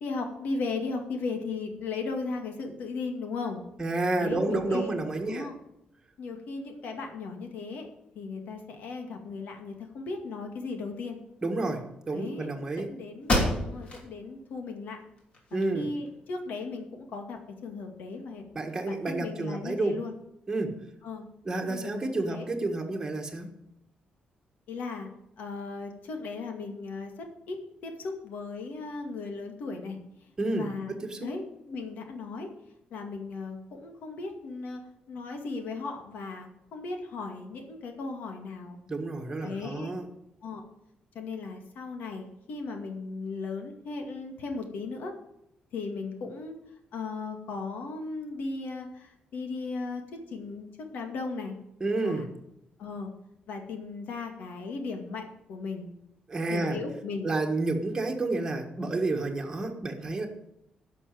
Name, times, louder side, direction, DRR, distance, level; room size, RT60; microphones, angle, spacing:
voice 1, 0.0-3.6 4.2-4.9 5.3-5.5 6.2-7.9 8.2-11.2 12.1-12.5 12.9-15.0 15.5-18.5 18.9-20.1 21.0-21.3 21.5-22.4 24.7-25.1 25.4-30.0 30.6-32.5 32.9-34.8 35.1-38.8 39.4-39.9 40.4-40.6 41.1-45.1 45.7-46.6 46.9-51.6 52.0-52.3 52.8-53.1 53.5-55.9 56.5-57.3, left 4 dB, 80° left, 4 dB, 2.2 m, -36 dB
voice 2, 3.8-5.5 11.4-12.9 15.5-15.9 18.5-20.0 20.5-20.9 21.4-23.5 30.4-31.3 38.9-40.1 51.8-52.3 56.3-56.8 57.2-60.3, right 2 dB, 20° right, 1 dB, 1.5 m, -30 dB
sound 1, 12.7-12.8 13.2-14.1 14.5-14.6 15.2-16.1, left 1 dB, 40° left, 3.1 m, -29 dB
11.0 x 6.2 x 9.1 m, 0.82 s
cardioid pair, 150°, 3 cm